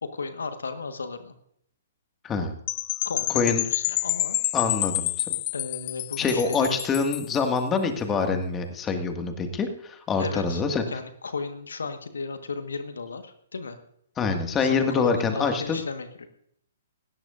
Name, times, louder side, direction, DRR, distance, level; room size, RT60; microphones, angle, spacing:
voice 1, 0.0-1.3 3.1-4.4 5.5-6.9 10.2-10.6 10.9-13.8 14.6-16.3, left 4 dB, 75° left, 9 dB, 1.4 m, -34 dB
voice 2, 2.2-2.5 3.4-3.6 4.5-5.3 6.2-10.8 14.2-15.8, left 5 dB, 20° left, 5 dB, 1.9 m, -25 dB
Percussion / Wind chime, 2.7-7.4, left 20 dB, 40° left, 0.5 m, -28 dB
19.5 x 17.0 x 2.6 m, 0.71 s
figure-of-eight pair, 120°, 0 cm